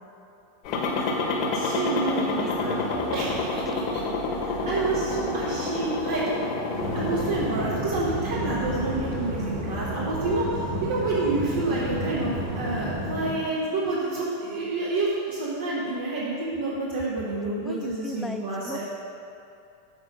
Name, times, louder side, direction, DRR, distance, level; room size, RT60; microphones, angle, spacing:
sound 1, 0.6-7.6, left 2 dB, 50° left, 1.3 m, -28 dB
voice 1, 1.5-4.0 4.4-6.2 6.9-18.8, right 2 dB, 75° right, -7 dB, 1.2 m, -29 dB
voice 2, 2.2-2.7 17.6-18.8, left 2 dB, 5° left, 8 dB, 0.4 m, -38 dB
sound 2, 2.3-10.1, left 7 dB, 70° left, 1.6 m, -44 dB
sound 3, 6.7-13.3, right 1 dB, 55° right, 1.9 m, -31 dB
7.3 x 4.7 x 6.2 m, 2.6 s
figure-of-eight pair, 90°, 0 cm